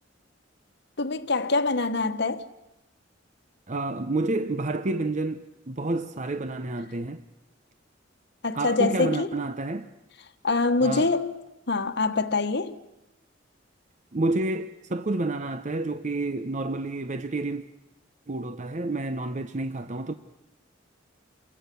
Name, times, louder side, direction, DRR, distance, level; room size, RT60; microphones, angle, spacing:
voice 1, 1.0-2.5 8.4-9.4 10.4-11.4 11.7-12.8, left 3 dB, 60° left, 1.4 m, -25 dB
voice 2, 3.7-7.2 8.5-9.9 10.8-11.1 14.1-17.6 18.3-20.1, right 2 dB, 40° right, 0.8 m, -29 dB
28.5 x 23.5 x 6.9 m
head